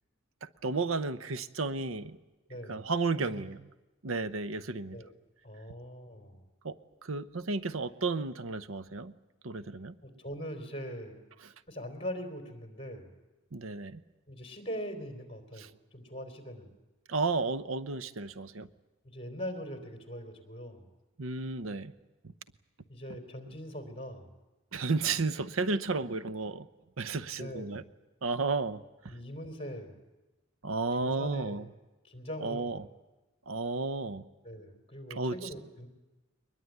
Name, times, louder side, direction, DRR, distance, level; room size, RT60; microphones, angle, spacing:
voice 1, 0.4-2.2 2.7-3.6 4.0-5.0 6.6-6.8 7.0-9.1 9.4-10.0 13.5-14.0 15.6-15.7 17.1-18.7 21.2-21.9 24.7-26.7 27.0-27.8 28.2-29.1 30.6-31.6 32.4-32.9 33.5-34.2 35.1-35.4, right 3 dB, 85° right, 13 dB, 0.8 m, -33 dB
voice 2, 2.5-2.9 3.2-3.4 4.9-5.1 5.4-6.5 10.0-11.2 11.7-13.1 14.3-15.7 15.9-16.8 19.0-20.9 22.9-24.3 27.4-27.9 29.1-30.0 30.9-31.6 32.0-32.8 34.4-35.9, equal, 30° left, 5 dB, 3.6 m, -41 dB
22.5 x 21.0 x 9.3 m, 1.1 s
head